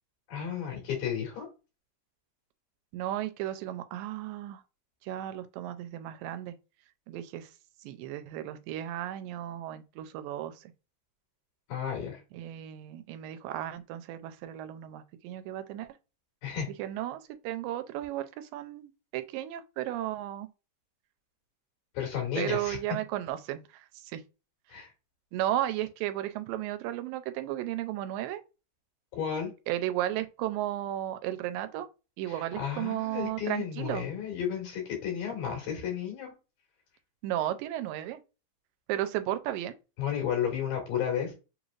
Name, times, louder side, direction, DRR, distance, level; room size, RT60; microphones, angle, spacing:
voice 1, 0.3-1.5 11.7-12.2 16.4-16.7 22.0-22.8 24.7-24.9 29.1-29.5 32.3-36.3 40.0-41.3, left 8 dB, 80° left, 3.7 m, -33 dB
voice 2, 2.9-4.6 5.0-6.6 7.1-7.5 7.8-10.7 12.3-15.9 16.8-20.5 22.4-24.2 25.3-28.4 29.7-31.9 32.2-34.0 37.2-38.2 38.9-39.7, right 13 dB, 90° right, 2.3 m, -34 dB
6.6 x 3.1 x 2.5 m
omnidirectional pair, 3.9 m